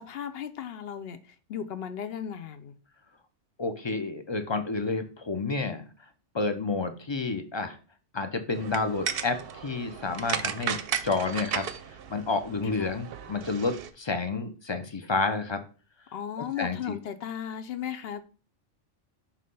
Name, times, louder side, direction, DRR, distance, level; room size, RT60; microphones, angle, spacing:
voice 1, 0.0-2.7 12.8-12.9 16.1-18.2, left 9 dB, 65° left, 11 dB, 0.8 m, -36 dB
voice 2, 3.6-5.8 6.3-7.8 8.1-10.8 11.0-11.7 12.1-15.6 16.6-17.0, left 3 dB, 35° left, 8 dB, 0.4 m, -30 dB
sound 1, 8.5-13.9, right 7 dB, 60° right, 0.7 m, -35 dB
5.8 x 3.2 x 5.3 m, 0.37 s
omnidirectional pair, 1.2 m